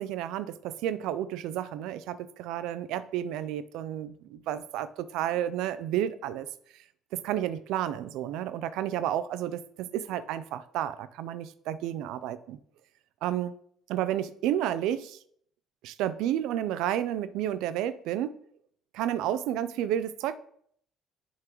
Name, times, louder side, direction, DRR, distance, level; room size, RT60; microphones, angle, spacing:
voice 1, 0.0-6.5 6.7-6.8 7.1-12.6 13.2-13.6 13.9-15.2 15.8-18.4 18.9-20.4, right 11 dB, 80° right, 0.4 m, -31 dB
11.0 x 3.7 x 3.0 m
cardioid pair, 130°, 0 cm